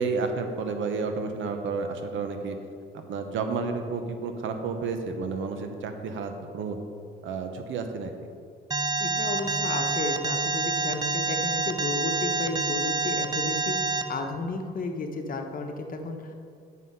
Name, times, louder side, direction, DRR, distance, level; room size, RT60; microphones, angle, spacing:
voice 1, 0.0-2.6 3.1-6.8 7.2-8.1, right 4 dB, 75° right, 6 dB, 0.8 m, -31 dB
Alarm, 8.7-14.0, right 3 dB, 20° right, 0.5 m, -27 dB
voice 2, 9.0-16.3, left 3 dB, 45° left, 4 dB, 0.9 m, -33 dB
9.3 x 4.1 x 5.5 m, 2.3 s
cardioid pair, 90°, 20 cm